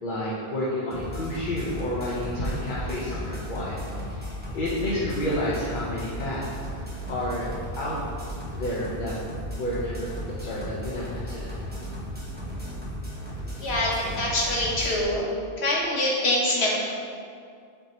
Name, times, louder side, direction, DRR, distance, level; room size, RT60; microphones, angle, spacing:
voice 1, 0.0-3.8 4.1-6.4 7.1-7.5 7.8-8.0 8.5-9.1 9.6-11.5, left 1 dB, 55° left, -6 dB, 0.9 m, -30 dB
sound 1, 0.9-15.0, equal, 10° right, 1.1 m, -35 dB
voice 2, 13.6-15.3 15.6-16.8, left 1 dB, 90° left, -3 dB, 1.4 m, -25 dB
6.6 x 3.5 x 4.2 m, 2.3 s
omnidirectional pair, 1.1 m